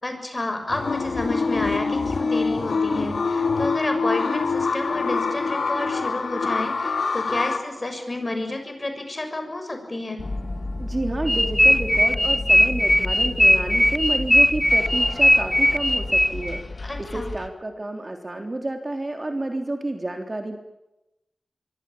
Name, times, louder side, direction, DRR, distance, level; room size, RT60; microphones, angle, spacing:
voice 1, 0.0-10.2 16.8-17.3, left 2 dB, 30° left, 6 dB, 6.8 m, -30 dB
sound 1, 0.7-7.6, left 4 dB, 80° left, 2.9 m, -25 dB
sound 2, 10.2-17.5, left 2 dB, 50° left, 2.5 m, -32 dB
voice 2, 10.8-16.6 17.0-20.6, right 2 dB, 30° right, 4 dB, 3.5 m, -30 dB
sound 3, 11.3-16.6, equal, 5° left, 1.1 m, -18 dB
25.5 x 23.5 x 8.6 m, 0.92 s
wide cardioid pair, 95°, 0 cm